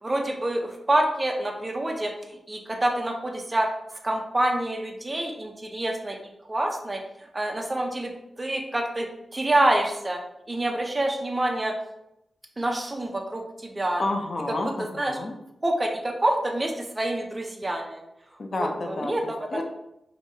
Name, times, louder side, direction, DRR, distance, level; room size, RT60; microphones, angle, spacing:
voice 1, 0.0-6.2 6.5-10.2 10.5-11.7 12.6-14.0 14.5-15.2 15.6-18.1 18.6-19.4, right 1 dB, 20° right, 2 dB, 0.5 m, -27 dB
voice 2, 14.0-15.3 18.4-19.6, left 2 dB, 40° left, 4 dB, 0.4 m, -30 dB
4.7 x 2.7 x 2.7 m, 0.83 s
wide cardioid pair, 165°, 0 cm